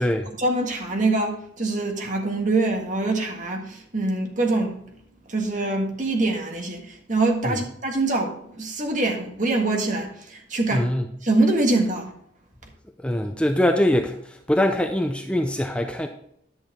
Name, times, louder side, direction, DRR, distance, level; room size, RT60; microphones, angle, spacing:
voice 1, 0.4-4.8 5.3-10.9 11.2-12.1, right 2 dB, 45° right, 1.6 m, -24 dB
voice 2, 10.7-11.0 13.0-16.1, left 1 dB, 5° left, 0.5 m, -23 dB
10.5 x 6.6 x 3.6 m
head